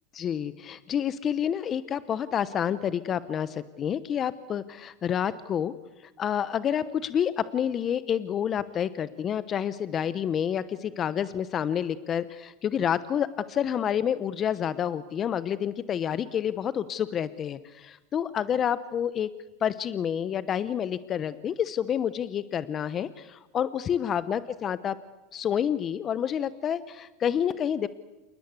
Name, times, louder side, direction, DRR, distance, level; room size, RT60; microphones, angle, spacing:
voice 1, 0.2-5.7 6.0-19.3 19.6-25.0 25.3-27.9, left 9 dB, 35° left, 15 dB, 0.9 m, -29 dB
28.5 x 20.0 x 8.2 m, 1.0 s
supercardioid pair, 120°, 0 cm